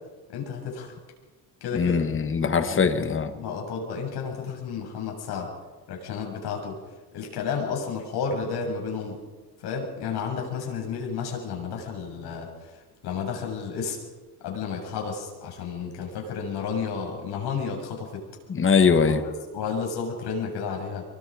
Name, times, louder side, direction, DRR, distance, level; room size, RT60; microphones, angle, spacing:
voice 1, 0.3-0.9 1.6-2.0 2.6-5.5 5.9-6.8 7.1-9.2 9.6-14.0 14.4-18.2 19.0-21.0, left 5 dB, 75° left, 1 dB, 7.3 m, -32 dB
voice 2, 1.7-3.3 18.5-19.2, left 5 dB, 30° left, 9 dB, 1.7 m, -21 dB
26.5 x 23.5 x 5.1 m, 1.3 s
cardioid pair, 115°, 40 cm